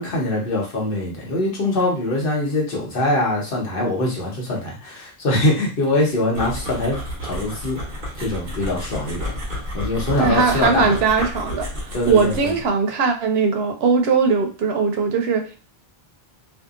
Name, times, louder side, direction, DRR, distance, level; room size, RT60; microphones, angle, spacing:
voice 1, 0.0-7.8 8.2-10.9 11.9-12.5, left 1 dB, 60° left, -2 dB, 1.1 m, -23 dB
sound 1, 6.3-12.7, equal, 55° right, 1.0 m, -30 dB
voice 2, 10.2-15.6, right 5 dB, 85° right, 5 dB, 0.8 m, -20 dB
2.7 x 2.4 x 2.4 m, 0.34 s
omnidirectional pair, 1.0 m